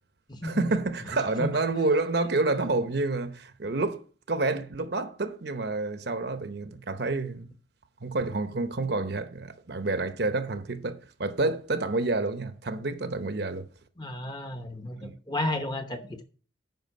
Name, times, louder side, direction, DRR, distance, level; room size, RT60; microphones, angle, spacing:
voice 1, 0.4-4.0 4.3-7.5 8.0-13.7 15.0-15.2, right 3 dB, 55° right, 0.8 m, -28 dB
voice 2, 14.0-16.2, left 1 dB, 20° left, 0.9 m, -33 dB
9.3 x 5.6 x 5.5 m
head